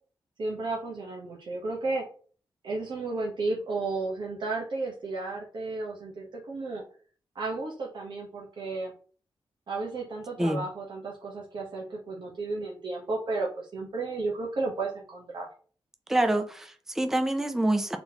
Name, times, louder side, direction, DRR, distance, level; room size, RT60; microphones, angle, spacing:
voice 1, 0.4-2.0 2.6-6.8 7.3-8.9 9.7-15.5, right 3 dB, 60° right, -2 dB, 1.0 m, -33 dB
voice 2, 16.1-18.0, right 1 dB, 5° right, 6 dB, 0.4 m, -26 dB
4.0 x 3.9 x 2.9 m, 0.41 s
wide cardioid pair, 140°, 9 cm